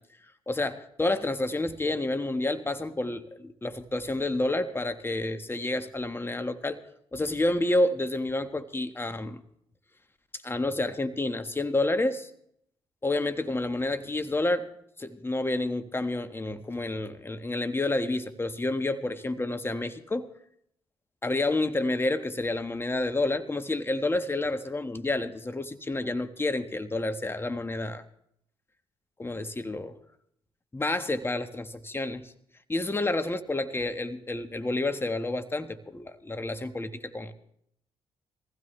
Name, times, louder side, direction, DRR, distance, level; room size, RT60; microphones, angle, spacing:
voice 1, 0.5-6.8 7.1-9.4 10.4-12.3 13.0-14.7 15.0-20.3 21.2-28.0 29.2-30.0 30.7-32.3 32.7-37.3, left 2 dB, 20° left, 10 dB, 1.5 m, -29 dB
22.0 x 15.5 x 3.3 m, 0.70 s
hypercardioid pair, 45°, 12 cm